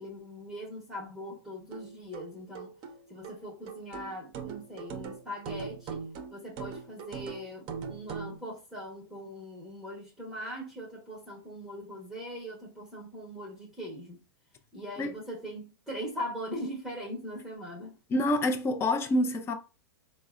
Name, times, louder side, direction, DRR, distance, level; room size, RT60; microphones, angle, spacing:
voice 1, 0.0-2.7 3.1-6.0 6.3-14.2 14.7-17.9, equal, ahead, 0.9 m, -41 dB
sound 1, 1.7-8.4, right 6 dB, 35° right, 0.7 m, -41 dB
voice 2, 18.1-19.5, left 1 dB, 20° left, 0.5 m, -27 dB
4.0 x 2.1 x 2.4 m
hypercardioid pair, 135°, 13 cm